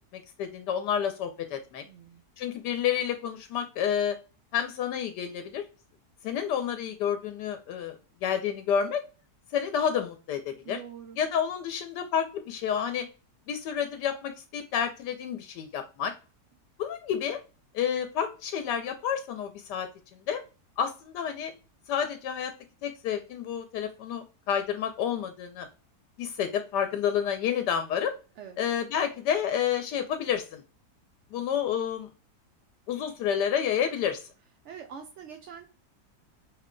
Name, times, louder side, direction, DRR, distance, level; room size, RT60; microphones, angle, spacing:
voice 1, 0.1-1.8 2.4-4.2 4.5-5.6 6.2-9.0 9.5-10.8 11.2-13.1 13.5-16.1 16.8-17.4 17.7-19.9 20.3-20.4 20.8-21.5 21.9-22.5 22.8-25.7 26.2-28.1 28.6-30.6 31.3-32.1 32.9-34.2, left 8 dB, 80° left, 7 dB, 1.2 m, -29 dB
voice 2, 1.8-2.2 10.6-11.2 28.4-28.6 34.6-35.7, right 7 dB, 75° right, 5 dB, 0.6 m, -44 dB
5.1 x 2.2 x 3.7 m, 0.34 s
omnidirectional pair, 1.8 m